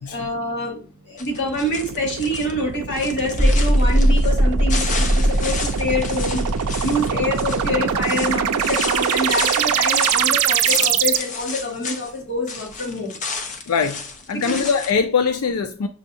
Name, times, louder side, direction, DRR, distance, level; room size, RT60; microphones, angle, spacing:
voice 1, 0.1-0.8 1.1-6.4 6.8-13.1 14.3-14.6, left 1 dB, 55° left, 1.9 m, -26 dB
sound 1, 1.2-2.5 2.9-4.4 4.7-12.2 12.4-14.9, left 4 dB, 35° left, 0.6 m, -32 dB
sound 2, 1.3-11.2, right 9 dB, 80° right, 0.4 m, -24 dB
sound 3, 3.3-9.7, equal, 5° right, 1.3 m, -21 dB
voice 2, 13.7-14.0 14.3-15.9, left 5 dB, 75° left, 0.4 m, -22 dB
6.3 x 2.7 x 2.6 m
head